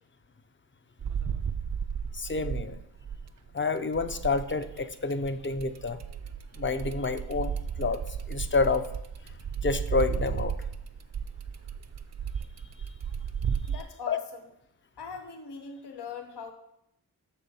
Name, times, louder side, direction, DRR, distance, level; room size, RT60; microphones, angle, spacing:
sound 1, 1.0-3.5 3.9-13.8, right 7 dB, 45° right, 0.4 m, -34 dB
voice 1, 2.1-2.8 3.5-6.0 6.5-8.0 8.3-8.9 9.6-10.5 14.1-14.2, left 4 dB, 30° left, 11 dB, 0.5 m, -29 dB
voice 2, 13.7-14.5 15.0-16.5, left 5 dB, 80° left, 4 dB, 0.9 m, -41 dB
6.5 x 4.2 x 5.3 m, 0.80 s
cardioid pair, 45°, 40 cm